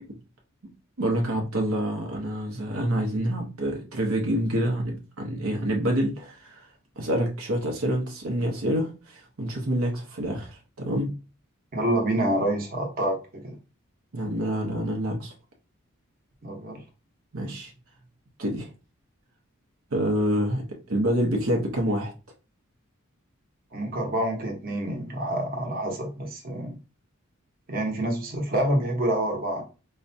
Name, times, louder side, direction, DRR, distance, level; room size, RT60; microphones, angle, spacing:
voice 1, 1.0-6.7 7.0-11.1 14.1-15.3 17.3-17.7 18.4-18.7 19.9-22.1, equal, 80° right, 0.8 m, -27 dB
voice 2, 11.7-13.5 16.4-16.8 23.7-26.7 27.7-29.6, right 1 dB, 45° right, 0.9 m, -27 dB
4.7 x 2.2 x 2.7 m
head